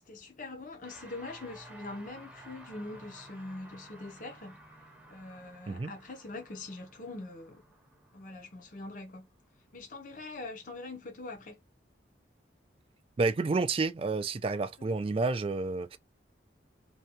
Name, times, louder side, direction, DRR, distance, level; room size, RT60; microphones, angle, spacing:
voice 1, 0.1-4.6 5.1-7.6 8.1-9.3 9.7-11.6 14.8-14.9, left 2 dB, 45° left, 0.7 m, -43 dB
sound 1, 0.8-10.3, right 1 dB, 5° right, 0.7 m, -54 dB
voice 2, 13.2-16.0, right 3 dB, 30° right, 0.3 m, -30 dB
2.6 x 2.2 x 2.8 m
head